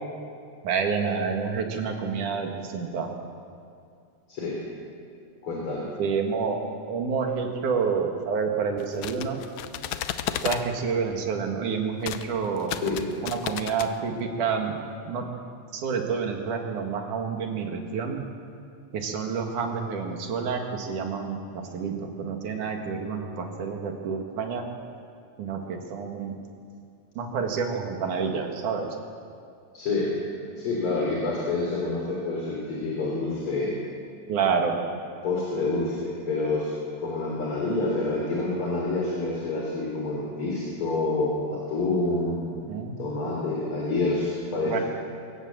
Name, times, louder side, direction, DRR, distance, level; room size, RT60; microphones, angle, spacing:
voice 1, 0.6-3.1 6.0-6.6 6.9-9.4 10.4-12.7 13.2-15.3 15.7-18.2 18.9-24.7 25.4-26.3 27.2-28.9 34.3-34.8 42.7-43.0 44.6-44.8, right 5 dB, 85° right, 3 dB, 3.4 m, -28 dB
voice 2, 5.4-5.9 12.8-13.0 29.7-30.1 30.6-33.7 35.2-36.7 37.0-42.4 43.0-44.8, left 3 dB, 45° left, -3 dB, 4.1 m, -27 dB
sound 1, 8.8-10.7 12.0-12.3 12.6-13.9, left 11 dB, 75° left, 2.1 m, -33 dB
23.0 x 17.5 x 7.4 m, 2.4 s
omnidirectional pair, 3.5 m